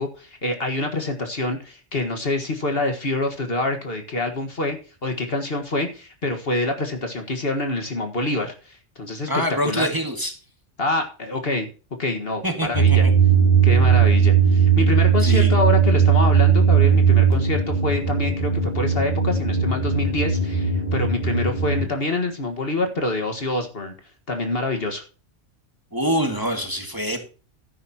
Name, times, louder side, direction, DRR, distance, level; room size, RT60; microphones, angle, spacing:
voice 1, 0.0-4.8 5.0-9.3 9.6-9.9 10.8-11.7 12.0-13.0 13.6-23.9 24.3-25.0, left 2 dB, 50° left, 5 dB, 1.8 m, -26 dB
voice 2, 9.3-10.3 12.4-13.1 15.2-15.5 25.9-27.2, equal, 15° right, 3 dB, 2.0 m, -25 dB
sound 1, 12.7-21.9, right 6 dB, 35° left, 4.6 m, -18 dB
12.5 x 10.5 x 2.9 m, 0.35 s
omnidirectional pair, 1.3 m